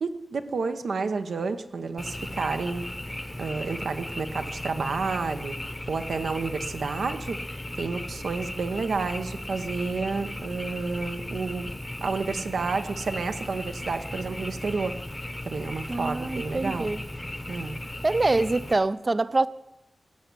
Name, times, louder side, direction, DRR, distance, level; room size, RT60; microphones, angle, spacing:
voice 1, 0.0-2.9 3.4-7.4 7.7-11.7 12.0-15.0 15.4-17.0 17.5-17.8, right 4 dB, 75° right, 8 dB, 0.9 m, -30 dB
Frog, 2.0-18.7, left 1 dB, 10° left, 0.8 m, -36 dB
voice 2, 15.9-17.0 18.0-19.5, right 2 dB, 30° right, 17 dB, 0.5 m, -25 dB
18.0 x 6.9 x 9.7 m, 0.92 s
wide cardioid pair, 155°, 0 cm